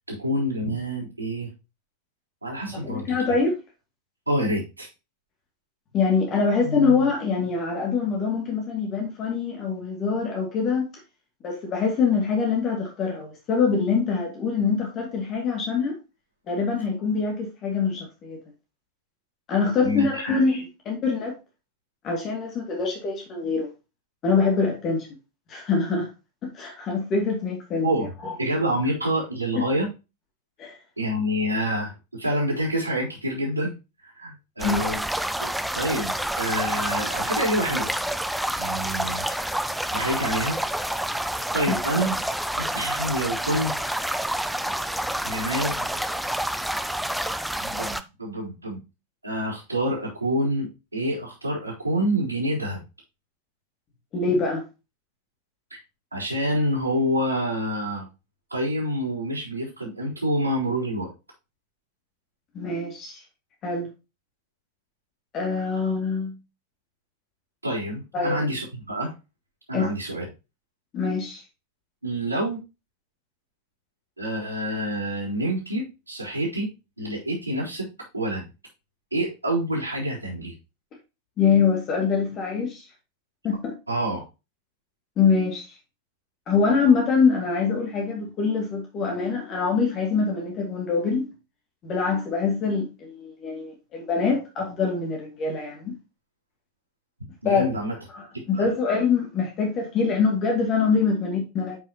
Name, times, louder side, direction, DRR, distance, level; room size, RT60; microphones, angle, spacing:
voice 1, 0.1-1.5 2.4-3.2 4.3-4.9 19.8-20.2 27.8-28.1 28.4-29.9 31.0-33.7 34.1-35.0 35.4-37.9 38.6-39.3 39.9-40.6 41.5-42.3 42.6-43.7 45.2-45.9 47.6-48.8 49.2-52.8 55.7-55.8 56.1-58.1 58.5-61.1 67.6-69.1 69.7-70.2 72.0-72.6 74.2-76.7 77.0-77.9 78.1-78.5 79.1-80.5 83.9-84.2 97.4-97.9 98.6-98.7, equal, 85° right, 3.8 m, -27 dB
voice 2, 2.8-3.5 5.9-10.9 11.4-16.0 16.5-18.4 19.5-21.4 22.0-23.7 24.2-25.1 25.5-26.1 26.4-27.9 28.2-28.3 30.6-30.8 34.6-34.8 41.7-41.8 54.1-54.6 62.5-63.2 63.6-63.9 65.3-66.4 68.1-68.4 69.7-69.9 70.9-71.4 81.4-82.8 83.4-83.7 85.2-85.6 86.5-91.3 91.8-95.9 97.4-97.6 98.1-101.8, left 5 dB, 30° left, 2.5 m, -24 dB
sound 1, 34.6-48.0, right 1 dB, ahead, 0.5 m, -28 dB
9.1 x 5.9 x 3.0 m
figure-of-eight pair, 90°, 0 cm